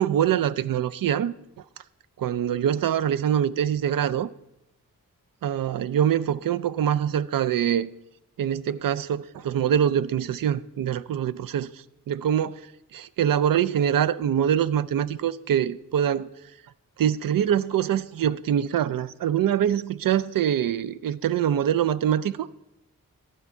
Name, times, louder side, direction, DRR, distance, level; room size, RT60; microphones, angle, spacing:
voice 1, 0.0-1.3 2.2-4.3 5.4-7.9 8.4-11.7 12.1-12.6 12.9-16.3 17.0-22.5, right 9 dB, 70° right, 0.5 m, -24 dB
12.0 x 4.5 x 7.0 m
wide cardioid pair, 95°, 36 cm